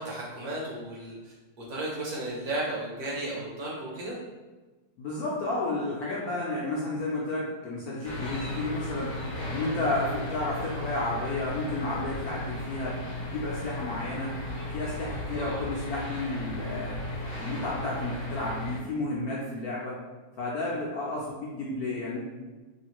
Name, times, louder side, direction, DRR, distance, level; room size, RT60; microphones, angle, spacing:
voice 1, 0.0-4.1 15.3-15.6, right 1 dB, 65° right, -4 dB, 1.0 m, -34 dB
voice 2, 5.0-9.1 9.5-14.3 14.7-17.0 17.4-20.0 20.4-22.2, left 2 dB, 70° left, -5 dB, 0.9 m, -32 dB
sound 1, 8.0-18.8, left 1 dB, 50° left, 0.6 m, -35 dB
3.1 x 2.5 x 2.9 m, 1.2 s
omnidirectional pair, 2.0 m